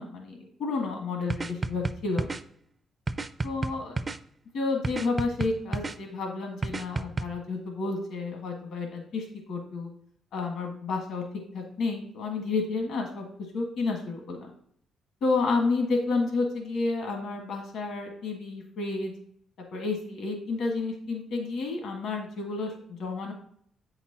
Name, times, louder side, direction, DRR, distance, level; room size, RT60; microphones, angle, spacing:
voice 1, 0.0-2.3 3.4-4.0 4.5-9.9 10.3-11.2 11.5-13.2 13.5-14.5 15.2-19.1 19.7-22.7 23.0-23.3, left 3 dB, 75° left, 2 dB, 1.5 m, -30 dB
sound 1, 1.3-2.4 3.1-4.2 4.8-6.0 6.6-7.3, right 3 dB, 25° right, 0.4 m, -31 dB
7.9 x 5.9 x 2.9 m, 0.63 s
cardioid pair, 90°, 0 cm